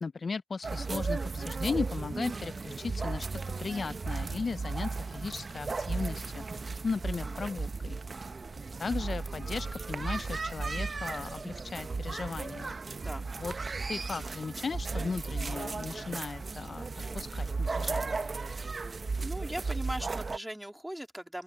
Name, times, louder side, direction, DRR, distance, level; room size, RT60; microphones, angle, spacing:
voice 1, 0.0-3.3 3.6-8.0 8.8-12.8 13.4-16.8 17.1-18.3, left 4 dB, 65° left, 0.5 m, -37 dB
sound 1, 0.6-20.4, right 4 dB, 55° right, 0.8 m, -35 dB
voice 2, 7.1-7.4 13.0-13.3 18.6-18.9 19.2-21.4, right 1 dB, 10° right, 2.9 m, -40 dB
open air
wide cardioid pair, 100°, 0 cm